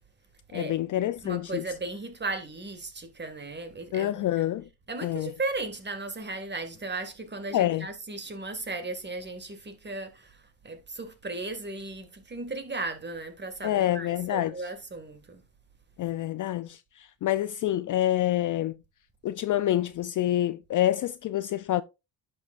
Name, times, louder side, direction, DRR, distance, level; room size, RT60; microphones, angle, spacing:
voice 1, 0.5-1.6 3.9-4.7 5.0-5.3 7.5-7.9 13.6-14.7 16.0-18.8 19.2-21.8, left 13 dB, 45° left, 0.4 m, -27 dB
voice 2, 1.2-4.3 4.9-15.4, right 3 dB, 20° right, 1.9 m, -36 dB
10.5 x 6.5 x 2.4 m
cardioid pair, 90°, 46 cm